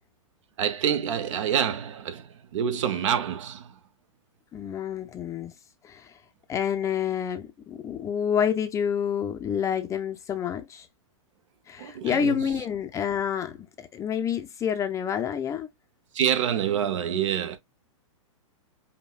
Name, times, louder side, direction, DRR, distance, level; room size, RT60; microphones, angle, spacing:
voice 1, 0.6-3.7 11.8-12.5 16.1-17.6, right 9 dB, 65° right, 0.8 m, -27 dB
voice 2, 4.5-5.5 5.8-6.1 6.5-10.9 11.7-15.7, left 8 dB, 20° left, 0.5 m, -28 dB
5.4 x 2.2 x 2.3 m
hypercardioid pair, 130°, 17 cm